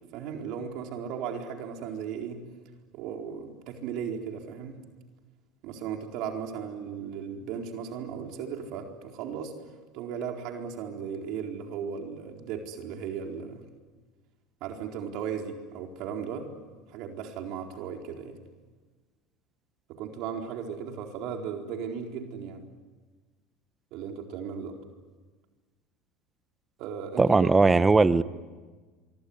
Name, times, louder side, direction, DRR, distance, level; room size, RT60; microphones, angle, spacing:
voice 1, 0.1-2.4 2.9-4.8 5.6-9.5 9.9-13.6 14.6-16.4 16.9-18.4 19.9-22.6 23.9-24.8 26.8-27.5, right 7 dB, 60° right, 3 dB, 4.2 m, -36 dB
voice 2, 27.2-28.2, right 3 dB, 15° right, 15 dB, 1.1 m, -19 dB
24.5 x 24.5 x 9.8 m, 1.4 s
supercardioid pair, 100°, 0 cm